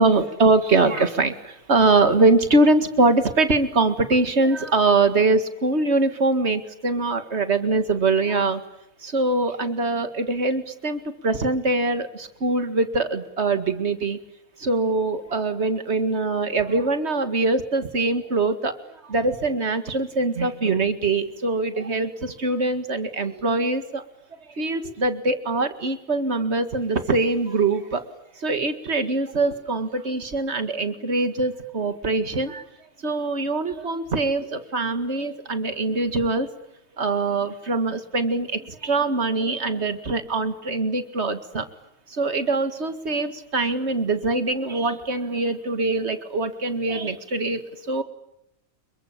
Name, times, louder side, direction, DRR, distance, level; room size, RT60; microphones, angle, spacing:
voice 1, 0.0-8.6 9.0-14.2 14.6-18.7 19.0-24.0 24.6-28.0 28.4-32.6 33.0-36.5 37.0-41.7 42.1-48.0, right 3 dB, 50° right, 9 dB, 2.3 m, -23 dB
28.0 x 23.0 x 8.7 m, 0.80 s
omnidirectional pair, 1.5 m